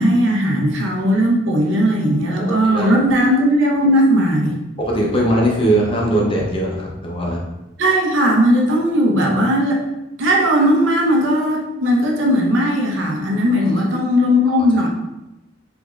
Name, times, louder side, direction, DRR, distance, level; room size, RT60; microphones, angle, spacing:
voice 1, 0.0-4.6 7.8-9.8 10.2-14.9, equal, 85° right, 0 dB, 0.7 m, -17 dB
voice 2, 2.4-2.9 4.8-7.4 13.6-13.7 14.4-14.6, right 1 dB, 30° left, -2 dB, 0.6 m, -20 dB
3.5 x 3.0 x 2.4 m, 0.93 s
head